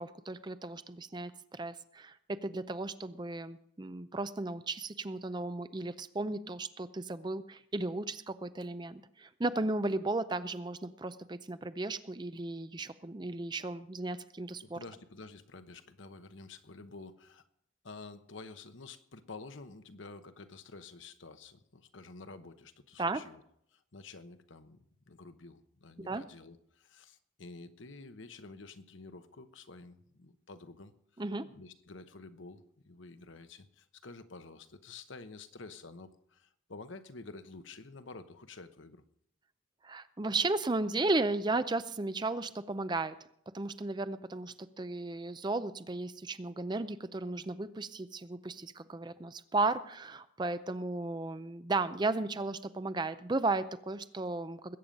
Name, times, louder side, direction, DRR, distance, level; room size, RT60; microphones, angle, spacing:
voice 1, 0.0-2.2 2.4-14.8 23.0-23.2 26.0-26.2 31.2-31.5 39.8-43.1 43.5-54.8, right 2 dB, 20° right, 13 dB, 0.5 m, -35 dB
voice 2, 14.6-17.4 17.8-23.4 23.7-39.0, left 3 dB, 65° left, 10 dB, 1.0 m, -50 dB
21.0 x 8.7 x 5.3 m, 0.73 s
head